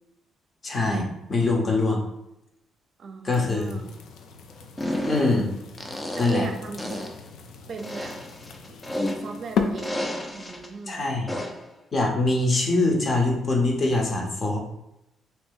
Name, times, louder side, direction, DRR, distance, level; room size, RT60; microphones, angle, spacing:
voice 1, 0.6-2.0 3.2-3.7 5.1-5.5 6.2-6.5 10.9-11.3 11.9-14.6, left 2 dB, 40° left, 0 dB, 0.9 m, -23 dB
voice 2, 3.0-3.9 6.1-7.0 7.7-8.2 8.7-8.8 9.2-11.0, right 4 dB, 55° right, 5 dB, 0.5 m, -37 dB
sound 1, 3.3-9.9, left 5 dB, 80° left, 0.4 m, -35 dB
sound 2, 4.8-5.4 5.8-6.5 6.8-7.2 7.8-9.4 9.8-10.7 11.3-11.7, left 1 dB, 20° left, 0.5 m, -32 dB
2.8 x 2.6 x 3.7 m, 0.86 s
cardioid pair, 90°, 0 cm